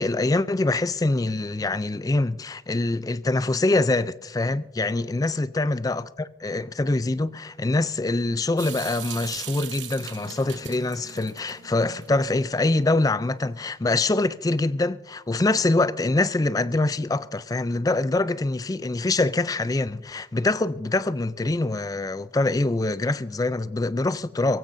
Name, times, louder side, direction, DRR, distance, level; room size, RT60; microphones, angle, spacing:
voice 1, 0.0-24.6, left 2 dB, 20° left, 0.4 m, -24 dB
Water tap faucet / Sink (filling or washing) / Drip, 8.6-12.7, right 10 dB, 80° right, 1.0 m, -40 dB
22.5 x 15.5 x 2.6 m
head